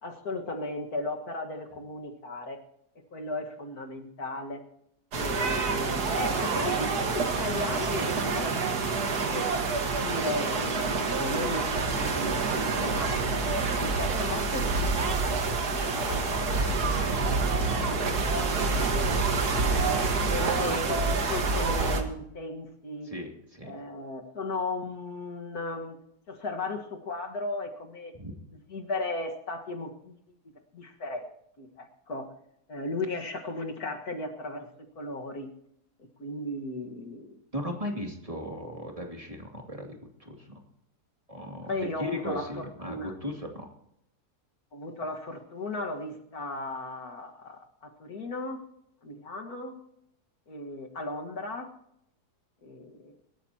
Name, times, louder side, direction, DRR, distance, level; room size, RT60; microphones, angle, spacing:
voice 1, 0.0-2.6 3.0-4.6 5.1-8.5 8.9-9.5 10.0-13.4 13.8-15.2 20.3-23.1 23.6-26.0 26.3-28.1 28.7-30.2 30.7-31.3 31.6-32.3 32.7-35.5 36.2-37.4 41.7-43.1 44.7-48.6 49.0-49.7 50.5-51.7 52.6-53.1, left 2 dB, 65° left, 3 dB, 2.1 m, -36 dB
sound 1, 5.1-22.0, right 4 dB, 75° right, 2.1 m, -27 dB
voice 2, 15.9-18.5 23.1-23.7 28.2-28.3 37.5-40.5 41.3-41.7 42.0-43.7, equal, 20° right, 1 dB, 2.5 m, -38 dB
25.0 x 13.5 x 2.9 m, 0.75 s
omnidirectional pair, 1.7 m